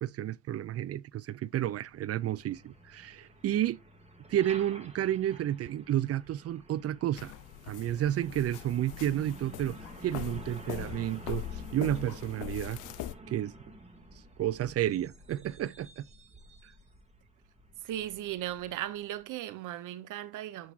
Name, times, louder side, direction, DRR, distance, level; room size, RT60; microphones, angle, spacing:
voice 1, 0.0-3.8 4.3-7.3 7.7-9.8 10.0-12.8 13.3-13.5 14.4-16.0, right 12 dB, 55° right, 0.4 m, -31 dB
Truck, 1.6-19.2, right 2 dB, 20° right, 2.0 m, -51 dB
sound 1, 7.2-13.1, left 14 dB, 90° left, 0.5 m, -41 dB
voice 2, 17.8-20.7, right 13 dB, 85° right, 0.8 m, -37 dB
8.5 x 5.8 x 2.4 m
cardioid pair, 90°, 30 cm